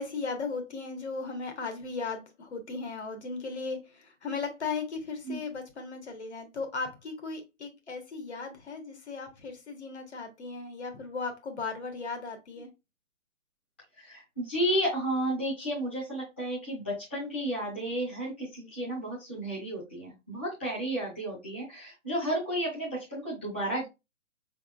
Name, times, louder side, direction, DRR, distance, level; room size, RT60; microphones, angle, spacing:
voice 1, 0.0-12.7, left 4 dB, 60° left, 6 dB, 1.3 m, -36 dB
voice 2, 14.0-23.9, right 1 dB, 10° left, -9 dB, 0.7 m, -32 dB
4.8 x 3.5 x 2.4 m, 0.23 s
hypercardioid pair, 180°, 38 cm